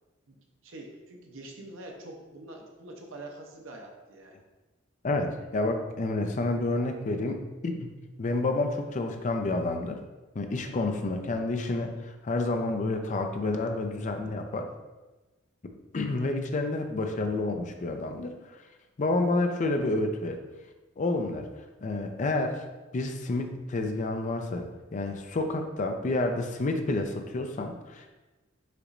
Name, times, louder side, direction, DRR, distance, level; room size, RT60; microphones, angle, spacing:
voice 1, 0.6-4.4, right 2 dB, 75° right, 1 dB, 0.7 m, -45 dB
voice 2, 5.0-7.9 8.2-10.0 10.4-14.7 15.9-18.3 19.0-20.4 21.0-21.5 21.8-22.6 22.9-28.1, left 2 dB, 40° left, 5 dB, 0.4 m, -29 dB
6.5 x 3.0 x 2.5 m, 1.1 s
head